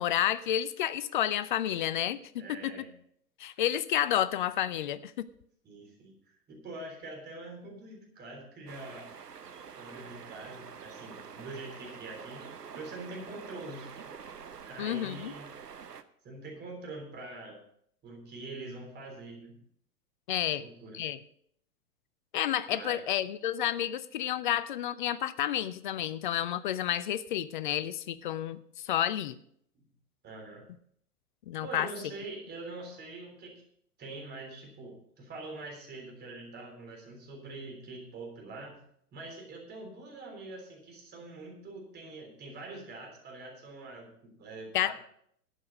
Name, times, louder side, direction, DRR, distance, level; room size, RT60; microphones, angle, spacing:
voice 1, 0.0-2.7 3.4-5.3 14.8-15.3 20.3-20.6 20.9-21.2 22.3-29.4 31.5-31.9 44.7-44.9, left 11 dB, 35° left, 16 dB, 0.4 m, -30 dB
voice 2, 2.4-2.9 5.6-6.1 6.5-9.1 9.6-12.5 12.7-14.0 14.6-15.5 16.2-17.6 18.0-19.6 20.5-21.0 22.7-23.0 29.8-29.9 30.2-30.7 31.6-33.6 34.0-38.8 39.1-44.9, right 2 dB, 20° right, 1 dB, 3.6 m, -44 dB
sound 1, 8.7-16.0, right 6 dB, 80° right, 0.9 m, -47 dB
12.0 x 8.5 x 5.2 m, 0.68 s
figure-of-eight pair, 105°, 47 cm